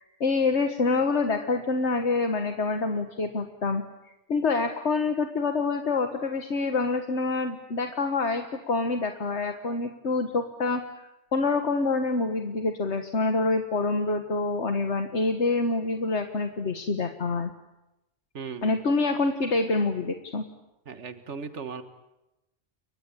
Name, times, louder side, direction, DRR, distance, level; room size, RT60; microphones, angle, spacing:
voice 1, 0.0-10.8 11.3-17.5 18.6-20.4, left 3 dB, 75° left, 6 dB, 1.8 m, -26 dB
voice 2, 18.3-18.7 20.9-21.8, right 5 dB, 80° right, 9 dB, 1.8 m, -37 dB
30.0 x 23.0 x 8.5 m, 0.95 s
omnidirectional pair, 1.2 m